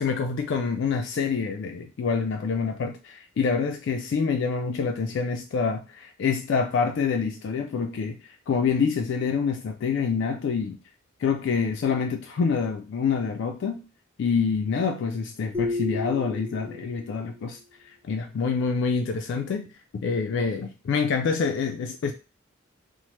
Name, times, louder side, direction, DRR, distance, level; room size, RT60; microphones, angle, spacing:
voice 1, 0.0-8.2 8.5-10.8 11.2-13.8 14.2-17.6 17.9-19.7 19.9-22.1, left 5 dB, 60° left, 5 dB, 0.3 m, -26 dB
sound 1, 15.5-17.2, left 3 dB, 10° right, 0.6 m, -32 dB
3.1 x 2.0 x 2.9 m, 0.31 s
head